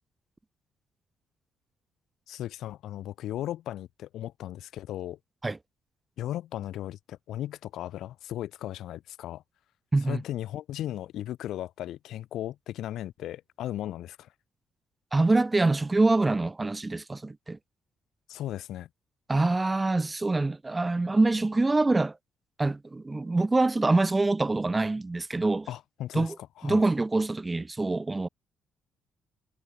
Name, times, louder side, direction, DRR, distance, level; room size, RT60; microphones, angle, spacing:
voice 1, 2.3-5.2 6.2-9.4 10.0-14.3 18.3-18.9 25.7-26.8, left 13 dB, 80° left, 4.5 m, -36 dB
voice 2, 15.1-17.6 19.3-22.2 22.6-25.7 26.1-26.4 26.6-28.3, right 2 dB, 20° right, 2.6 m, -25 dB
cardioid pair, 90°, 0 cm